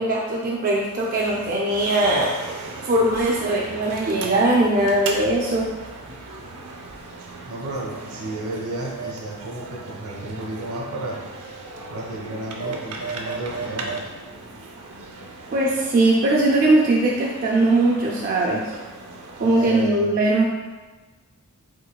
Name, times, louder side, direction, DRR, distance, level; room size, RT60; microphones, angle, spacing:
voice 1, 0.0-2.3 2.8-5.7 15.5-18.7 19.4-20.4, right 2 dB, 40° right, -3 dB, 0.4 m, -20 dB
sound 1, 0.8-19.7, right 3 dB, 85° right, 0.6 m, -37 dB
voice 2, 7.4-11.2 11.9-14.1 19.4-20.2, right 1 dB, 70° right, -2 dB, 1.1 m, -32 dB
5.1 x 3.9 x 2.2 m, 1.3 s
head